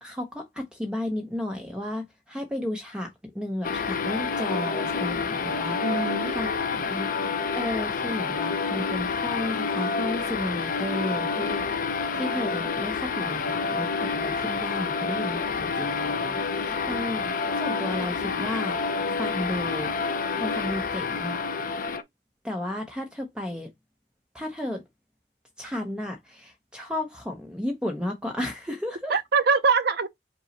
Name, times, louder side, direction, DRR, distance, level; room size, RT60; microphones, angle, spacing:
voice 1, 0.0-6.0 6.3-7.1 7.5-18.8 19.2-19.9 20.4-21.4 22.4-23.7 24.3-24.8 25.6-29.2, left 1 dB, 5° right, 0.6 m, -33 dB
sound 1, 3.6-22.0, left 5 dB, 45° left, 0.5 m, -28 dB
voice 2, 5.8-6.9 29.1-30.1, right 4 dB, 55° right, 0.5 m, -24 dB
5.2 x 2.0 x 4.0 m
head